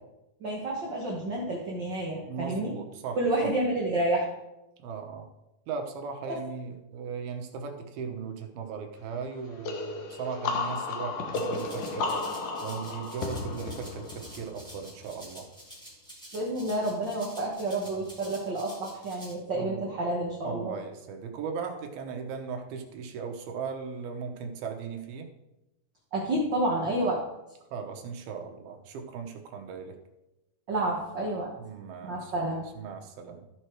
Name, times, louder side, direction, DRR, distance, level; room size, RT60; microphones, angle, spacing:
voice 1, 0.4-2.8 3.2-4.3 6.3-6.4 16.3-20.7 26.1-27.2 30.7-31.5 32.0-32.7, right 1 dB, 65° right, -2 dB, 1.1 m, -29 dB
voice 2, 2.3-3.2 4.8-5.3 5.7-12.3 12.6-15.4 17.9-18.0 19.6-19.8 20.4-25.3 27.7-29.9 31.6-32.5 32.8-33.4, right 6 dB, 85° right, 4 dB, 3.0 m, -38 dB
sound 1, 9.6-15.2, left 3 dB, 65° left, 2.3 m, -34 dB
Rattle (instrument), 11.3-19.3, equal, ahead, 1.9 m, -49 dB
14.0 x 4.8 x 4.5 m, 0.94 s
omnidirectional pair, 4.2 m